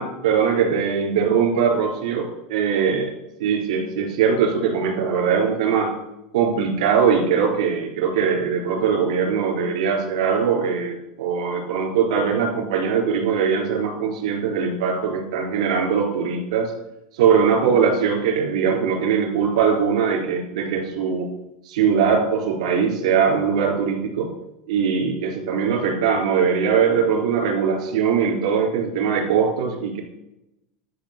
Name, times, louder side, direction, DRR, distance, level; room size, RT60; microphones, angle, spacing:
voice 1, 0.0-3.1 3.4-6.0 6.3-16.7 17.1-21.3 21.7-24.3 24.7-30.0, right 6 dB, 85° right, 2 dB, 3.9 m, -21 dB
12.5 x 6.3 x 6.6 m, 0.89 s
supercardioid pair, 165°, 3 cm